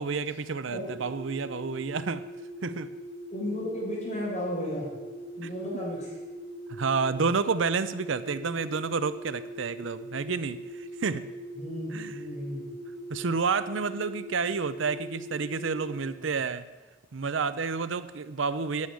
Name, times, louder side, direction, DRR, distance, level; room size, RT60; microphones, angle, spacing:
voice 1, 0.0-2.3 2.6-2.9 5.4-5.5 6.7-11.3 11.9-12.2 13.1-16.6 17.1-18.9, right 5 dB, 75° right, 14 dB, 0.6 m, -30 dB
sound 1, 1.0-16.0, equal, 35° right, 2.1 m, -41 dB
voice 2, 3.3-4.9 5.4-6.1 11.6-12.7, equal, 35° left, -5 dB, 5.3 m, -34 dB
9.6 x 8.4 x 9.8 m, 1.2 s
head